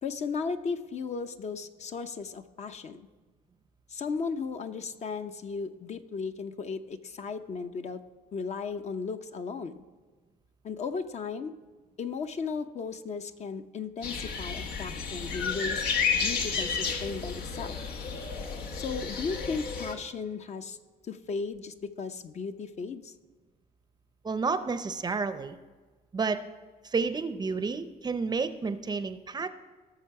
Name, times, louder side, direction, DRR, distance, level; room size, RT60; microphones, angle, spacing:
voice 1, 0.0-3.1 3.9-8.0 8.3-9.7 10.6-11.5 12.0-15.8 16.1-17.8 18.7-20.8 21.1-23.1, left 5 dB, 40° left, 8 dB, 0.7 m, -35 dB
sound 1, 14.0-19.9, left 5 dB, 85° left, 1.4 m, -32 dB
voice 2, 24.2-25.6 26.1-26.4 26.8-29.5, right 4 dB, 25° right, 11 dB, 0.6 m, -30 dB
18.0 x 6.7 x 4.7 m, 1.3 s
cardioid pair, 110°, 17 cm